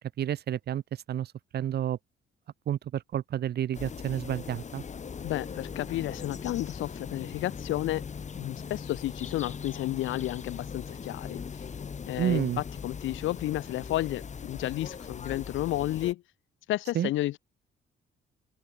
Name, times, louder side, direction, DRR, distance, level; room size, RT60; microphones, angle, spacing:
voice 1, 0.2-0.8 1.1-2.0 2.7-4.8 12.2-12.6 16.9-17.1, right 11 dB, 55° right, 0.6 m, -30 dB
sound 1, 3.7-16.1, left 6 dB, 35° left, 1.3 m, -40 dB
voice 2, 5.2-8.0 8.4-11.4 12.1-16.2 16.7-17.4, left 15 dB, 80° left, 0.7 m, -32 dB
open air
cardioid pair, 90°, 20 cm